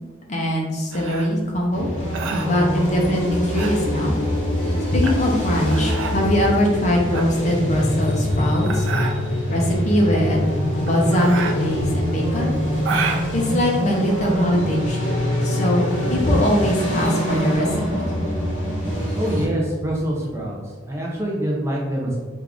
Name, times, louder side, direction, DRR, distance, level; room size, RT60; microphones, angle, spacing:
voice 1, 0.3-1.9 2.4-4.2 4.9-8.9 9.5-10.5 10.8-12.5 13.3-15.1 15.4-17.7 17.9-18.0, equal, 35° left, -1 dB, 0.6 m, -21 dB
sound 1, 0.9-14.5, right 5 dB, 75° right, 0.4 m, -31 dB
sound 2, 1.7-19.5, equal, 70° left, 1.2 m, -24 dB
voice 2, 19.1-20.6 20.9-22.2, right 1 dB, 15° right, -3 dB, 0.4 m, -25 dB
3.5 x 2.4 x 3.4 m, 1.4 s
head